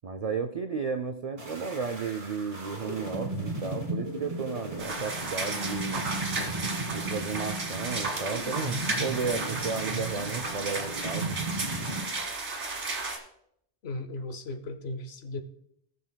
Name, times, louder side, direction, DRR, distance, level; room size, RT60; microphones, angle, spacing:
voice 1, 0.0-6.1 6.9-11.4, right 5 dB, 60° right, 6 dB, 0.4 m, -33 dB
sound 1, 1.4-12.0, right 2 dB, 30° right, 1.8 m, -36 dB
sound 2, 4.8-13.2, right 3 dB, 85° right, 1.8 m, -34 dB
voice 2, 13.8-15.4, left 2 dB, 65° left, 9 dB, 1.0 m, -36 dB
18.0 x 6.7 x 2.2 m, 0.73 s
omnidirectional pair, 1.2 m